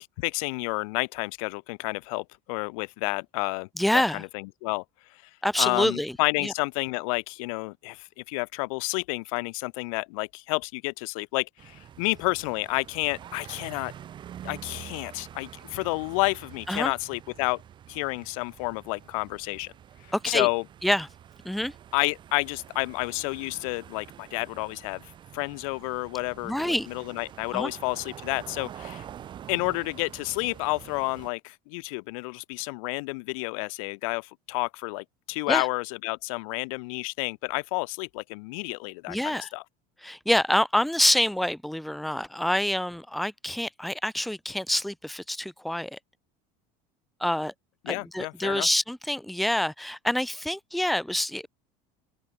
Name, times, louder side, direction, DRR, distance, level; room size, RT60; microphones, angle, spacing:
voice 1, 0.0-3.7 3.9-4.8 5.6-13.9 14.4-17.6 17.9-19.7 20.3-20.6 21.9-25.0 25.3-29.0 29.5-39.6 47.9-48.7, left 27 dB, 80° left, 1.9 m, -30 dB
voice 2, 3.8-4.2 5.4-6.2 6.4-6.5 16.7-16.9 20.1-20.5 20.8-21.1 21.4-21.7 26.4-26.9 27.5-27.7 35.5-35.7 39.1-39.5 40.0-46.0 47.2-47.5 47.9-51.5, left 1 dB, ahead, 1.1 m, -26 dB
sound 1, 11.6-31.3, right 10 dB, 25° right, 4.2 m, -46 dB
open air
cardioid pair, 175°, 17 cm